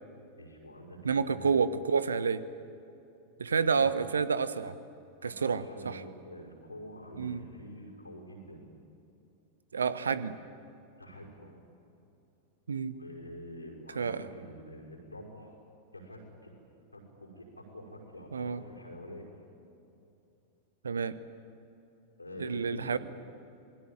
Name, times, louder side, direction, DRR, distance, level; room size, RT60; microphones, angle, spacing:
voice 1, 0.2-1.5 3.5-3.9 5.2-8.6 11.0-11.6 12.8-15.5 15.9-16.5 16.9-19.4 22.2-23.0, equal, 85° left, 0 dB, 5.6 m, -47 dB
voice 2, 1.0-2.4 3.4-4.8 5.2-6.0 7.2-7.4 9.7-10.3 12.7-13.0 13.9-14.3 18.3-18.6 20.8-21.2 22.4-23.0, right 5 dB, 70° right, 15 dB, 1.1 m, -29 dB
27.5 x 21.0 x 9.0 m, 2.7 s
figure-of-eight pair, 90°, 0 cm